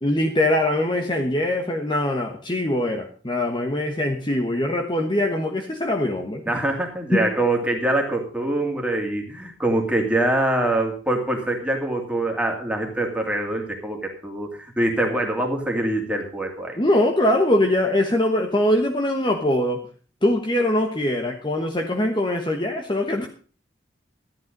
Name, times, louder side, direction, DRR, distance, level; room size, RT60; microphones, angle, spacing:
voice 1, 0.0-6.4 7.1-7.3 16.8-19.8 20.2-23.3, left 1 dB, 25° left, 2 dB, 1.2 m, -22 dB
voice 2, 6.5-16.8, right 1 dB, 5° right, 1 dB, 2.6 m, -24 dB
13.5 x 10.5 x 5.3 m, 0.41 s
head